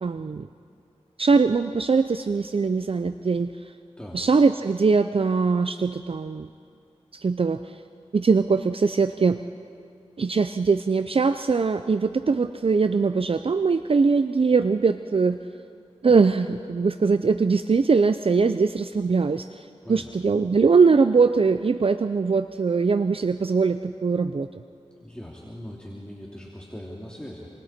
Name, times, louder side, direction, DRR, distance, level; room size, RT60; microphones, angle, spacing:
voice 1, 0.0-0.5 1.2-3.5 4.1-6.5 7.1-7.6 8.1-9.4 10.2-15.4 16.0-24.5, right 4 dB, 55° right, 10 dB, 0.5 m, -21 dB
voice 2, 25.0-27.5, equal, 10° left, -4 dB, 2.9 m, -40 dB
29.0 x 23.0 x 4.4 m, 2.4 s
wide cardioid pair, 50°, 12 cm